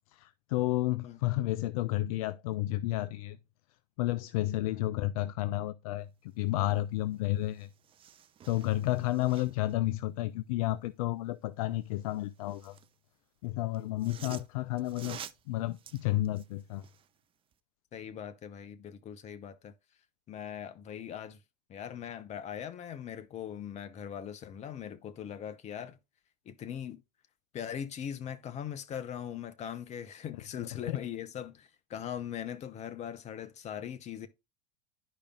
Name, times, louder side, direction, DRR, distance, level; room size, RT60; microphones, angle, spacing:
voice 1, 0.1-3.4 4.0-7.7 8.5-12.8 13.4-15.2 15.5-16.8 30.9-31.0, left 16 dB, 60° left, 0.4 m, -31 dB
sound 1, 7.1-7.2 7.5-9.7 11.9-12.9 13.7-17.1 17.5-17.6, right 9 dB, 25° right, 0.5 m, -50 dB
voice 2, 17.9-19.7 20.3-21.4 21.7-26.0 26.5-27.0 27.5-34.3, left 9 dB, 35° left, 0.9 m, -40 dB
11.0 x 5.0 x 2.4 m
hypercardioid pair, 85°, 21 cm